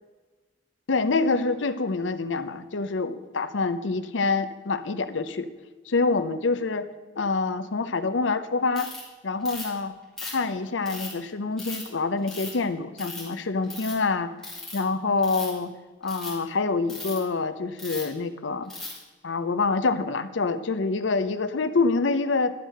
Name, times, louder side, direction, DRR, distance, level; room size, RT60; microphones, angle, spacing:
voice 1, 0.9-5.5 5.9-6.8 7.2-8.9 9.2-9.9 10.2-14.3 14.7-15.7 16.0-18.7 19.2-22.5, left 3 dB, 80° left, 12 dB, 0.7 m, -26 dB
Ratchet pawl, 8.7-9.0 9.4-9.8 10.2-11.1 11.6-11.8 12.3-12.6 13.0-13.3 13.6-13.9 14.4-14.8 15.2-15.6 16.0-16.3 16.9-17.2 17.8-18.1 18.7-19.0, left 3 dB, 5° left, 3.5 m, -37 dB
11.0 x 6.4 x 6.5 m, 1.3 s
head